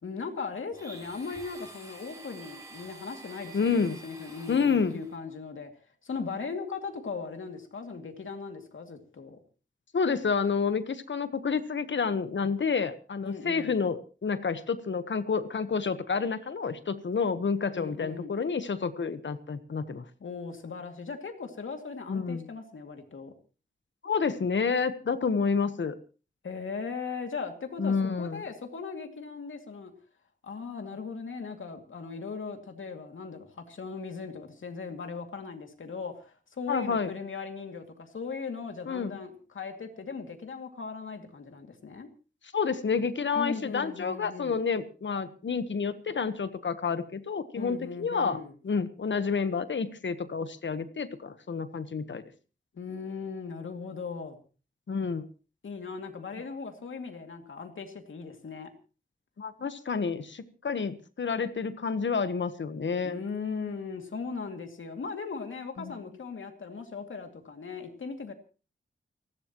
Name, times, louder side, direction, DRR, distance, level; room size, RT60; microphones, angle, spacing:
voice 1, 0.0-5.7 6.0-9.4 13.2-13.8 17.7-18.3 20.2-23.3 26.4-29.9 30.4-42.1 43.3-44.6 47.6-48.5 52.7-54.4 55.6-58.7 63.0-68.3, left 5 dB, 85° left, 5 dB, 2.4 m, -38 dB
Domestic sounds home sounds, 0.7-5.2, right 2 dB, 15° right, 6.1 m, -48 dB
voice 2, 3.5-4.0 4.5-5.0 9.9-20.0 22.1-22.5 24.0-25.9 27.8-28.4 36.7-37.1 38.9-39.2 42.5-48.4 48.6-52.2 54.9-55.3 59.4-63.2 65.8-65.9, left 5 dB, 70° left, 12 dB, 1.2 m, -29 dB
29.5 x 12.0 x 3.0 m, 0.36 s
wide cardioid pair, 80°, 20 cm